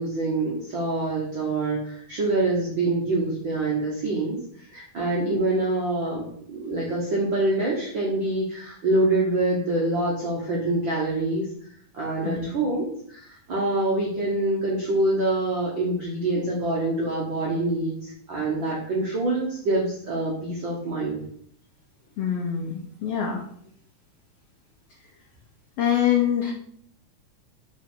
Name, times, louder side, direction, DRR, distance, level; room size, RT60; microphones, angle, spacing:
voice 1, 0.0-11.5 11.9-21.2, right 2 dB, 70° right, -4 dB, 1.1 m, -25 dB
voice 2, 22.2-23.4 25.8-26.5, left 9 dB, 80° left, 0 dB, 1.3 m, -24 dB
6.0 x 4.1 x 4.5 m, 0.63 s
omnidirectional pair, 3.9 m